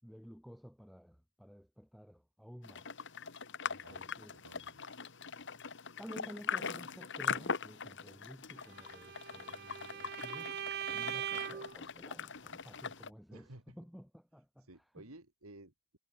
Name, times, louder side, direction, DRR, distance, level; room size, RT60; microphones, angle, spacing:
voice 1, 0.0-2.9 3.6-4.4 6.0-10.6 10.9-15.0, equal, ahead, 6.0 m, -53 dB
sound 1, 2.6-13.1, left 6 dB, 55° left, 1.8 m, -42 dB
voice 2, 4.3-4.8 13.3-13.8 14.6-16.0, right 2 dB, 75° right, 3.0 m, -55 dB
Bowed string instrument, 8.7-11.8, right 9 dB, 50° right, 0.6 m, -41 dB
head